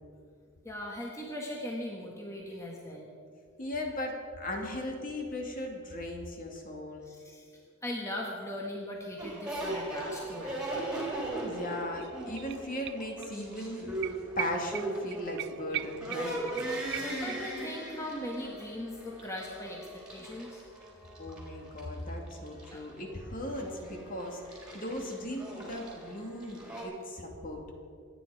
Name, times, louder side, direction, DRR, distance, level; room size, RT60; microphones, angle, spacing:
voice 1, 0.6-3.2 7.0-7.5 7.8-10.6 17.0-20.6 22.7-22.8, left 1 dB, 15° left, -2 dB, 1.6 m, -39 dB
voice 2, 3.6-7.0 11.4-14.0 14.4-16.4 21.2-27.6, left 1 dB, 40° left, 1 dB, 2.4 m, -38 dB
sound 1, 9.2-26.8, right 2 dB, 5° right, 3.7 m, -39 dB
sound 2, 11.6-11.7 11.9-13.3 13.6-13.7 14.0-17.7 18.0-18.1, right 15 dB, 55° right, 0.3 m, -40 dB
26.5 x 9.8 x 5.0 m, 2.3 s
head